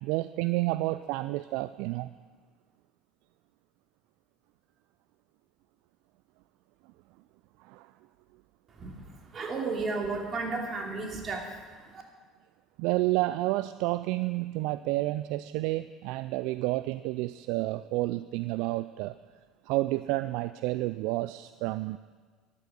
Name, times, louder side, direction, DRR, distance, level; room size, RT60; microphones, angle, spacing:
voice 1, 0.0-2.1 7.7-7.8 12.8-19.1 19.7-22.0, right 18 dB, 65° right, 14 dB, 0.3 m, -30 dB
voice 2, 9.3-11.4, right 3 dB, 40° right, 1 dB, 2.9 m, -32 dB
13.0 x 11.5 x 6.7 m, 1.5 s
figure-of-eight pair, 60°, 0 cm